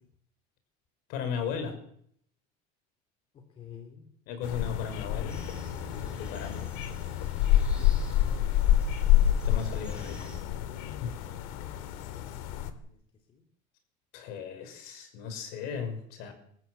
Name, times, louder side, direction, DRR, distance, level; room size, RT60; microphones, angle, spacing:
voice 1, 1.1-1.8 4.3-5.4 6.2-6.7 9.4-10.4 11.0-11.1 14.1-16.3, left 6 dB, 60° left, 8 dB, 5.8 m, -36 dB
voice 2, 3.5-4.1 7.7-8.6 12.1-12.4 12.9-13.0 13.3-13.4, left 7 dB, 30° left, 4 dB, 3.2 m, -50 dB
sound 1, 4.4-12.7, left 11 dB, 80° left, 2.5 m, -28 dB
sound 2, 5.3-10.4, left 1 dB, 5° right, 5.2 m, -47 dB
25.5 x 14.0 x 8.2 m, 0.66 s
cardioid pair, 170°, 18 cm